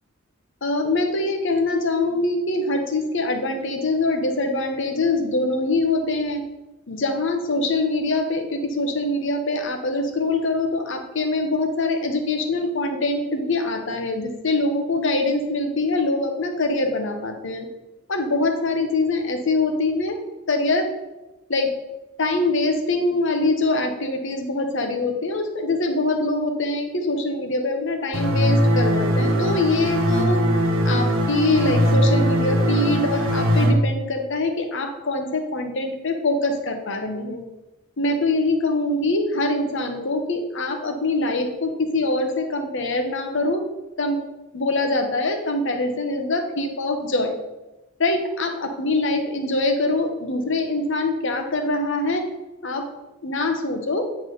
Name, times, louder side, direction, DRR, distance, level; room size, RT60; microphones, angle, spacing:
voice 1, 0.6-6.4 6.9-17.7 18.1-20.2 20.5-20.9 21.5-21.7 22.2-30.4 30.8-37.4 38.0-43.6 44.0-44.2 44.5-47.4 48.0-52.3 52.6-52.9 53.2-54.0, left 2 dB, 65° left, 5 dB, 1.0 m, -23 dB
sound 1, 28.1-33.7, equal, 75° right, 1.2 m, -20 dB
9.2 x 4.7 x 3.9 m, 1.0 s
head